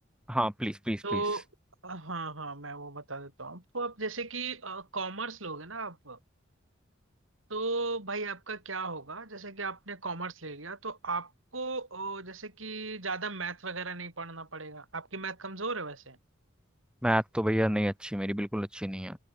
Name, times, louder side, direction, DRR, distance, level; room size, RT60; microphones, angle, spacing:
voice 1, 0.3-1.2 17.0-19.2, equal, 5° right, 3.2 m, -29 dB
voice 2, 1.0-1.5 1.8-6.2 7.5-16.2, right 3 dB, 90° right, 7.5 m, -36 dB
head